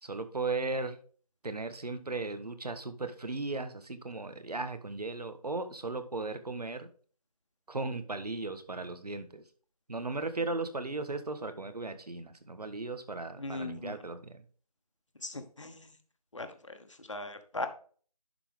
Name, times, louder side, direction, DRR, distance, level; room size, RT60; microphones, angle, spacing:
voice 1, 0.0-1.0 1.4-6.9 7.7-9.4 9.9-14.4, right 3 dB, 90° right, 10 dB, 1.4 m, -36 dB
voice 2, 13.4-13.9 15.2-15.8 16.3-16.5 17.1-17.7, left 2 dB, 50° left, 8 dB, 1.1 m, -38 dB
11.0 x 4.2 x 3.5 m, 0.43 s
figure-of-eight pair, 180°, 20 cm